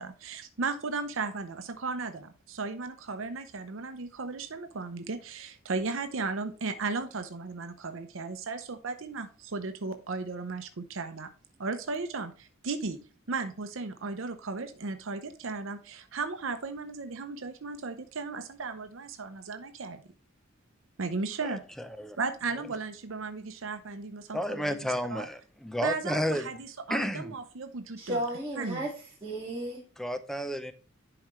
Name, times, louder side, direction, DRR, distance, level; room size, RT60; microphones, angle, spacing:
voice 1, 0.0-11.3 11.6-13.0 13.3-20.0 21.0-21.6 22.2-24.8 25.1-25.3 25.8-28.2 28.6-28.9, right 4 dB, 75° right, 8 dB, 0.7 m, -35 dB
voice 2, 21.4-22.2 24.3-26.5 26.9-27.3 30.0-30.7, equal, ahead, 10 dB, 0.5 m, -32 dB
voice 3, 28.0-29.8, right 1 dB, 15° right, -8 dB, 2.0 m, -34 dB
11.0 x 4.9 x 3.1 m, 0.37 s
head